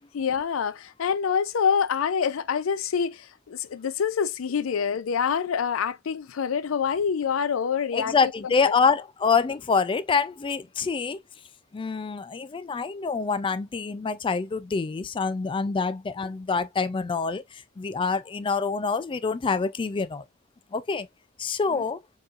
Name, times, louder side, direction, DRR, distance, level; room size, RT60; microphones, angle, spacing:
voice 1, 0.1-8.7 21.7-21.8, left 7 dB, 85° left, 0.4 m, -26 dB
voice 2, 7.9-11.2 11.7-17.4 17.8-20.2 20.7-21.1 21.4-22.0, left 5 dB, 25° left, 0.3 m, -26 dB
4.6 x 3.0 x 2.4 m
head